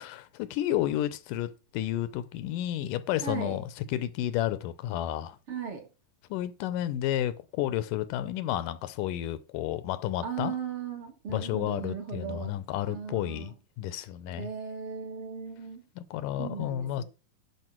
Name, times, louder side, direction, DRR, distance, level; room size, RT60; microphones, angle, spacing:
voice 1, 0.0-5.4 6.3-10.6 11.3-14.5 16.0-17.0, left 12 dB, 80° left, 2.3 m, -31 dB
voice 2, 3.2-3.6 5.5-5.9 10.2-12.6 12.9-13.5 14.3-15.9 16.4-17.0, right 6 dB, 45° right, 2.4 m, -37 dB
11.0 x 4.9 x 6.1 m
omnidirectional pair, 3.8 m